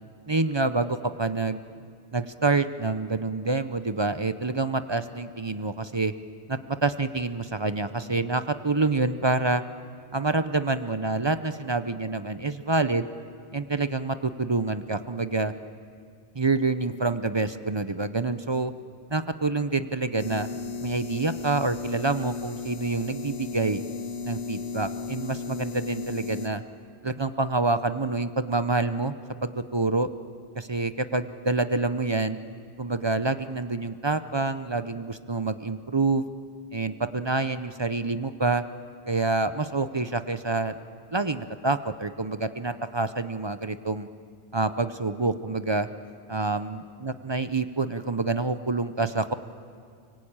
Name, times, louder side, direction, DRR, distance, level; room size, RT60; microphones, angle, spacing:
voice 1, 0.3-1.6 2.1-6.1 6.5-9.6 10.1-13.1 13.5-15.5 16.3-18.7 19.1-20.5 20.8-23.8 24.2-26.6 27.0-29.1 29.4-30.1 30.5-32.4 32.8-36.2 36.7-38.6 39.1-40.7 41.1-44.1 44.5-45.9 46.3-49.3, right 3 dB, 30° right, 11 dB, 0.6 m, -27 dB
sound 1, 20.2-26.5, left 4 dB, 90° left, 1.5 m, -35 dB
24.0 x 24.0 x 8.8 m, 2.2 s
omnidirectional pair, 1.1 m